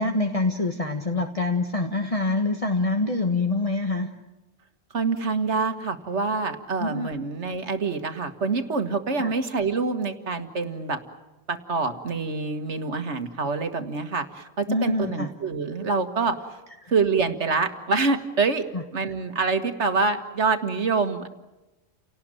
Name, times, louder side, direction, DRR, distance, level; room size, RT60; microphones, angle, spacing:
voice 1, 0.0-4.1 6.8-7.1 9.2-9.3 14.7-15.3 16.8-16.9 18.7-18.8, left 2 dB, 30° left, 4 dB, 1.4 m, -25 dB
voice 2, 4.9-11.0 11.5-16.6 16.9-21.3, right 4 dB, 65° right, 8 dB, 1.9 m, -26 dB
30.0 x 18.5 x 9.1 m, 1.1 s
omnidirectional pair, 1.3 m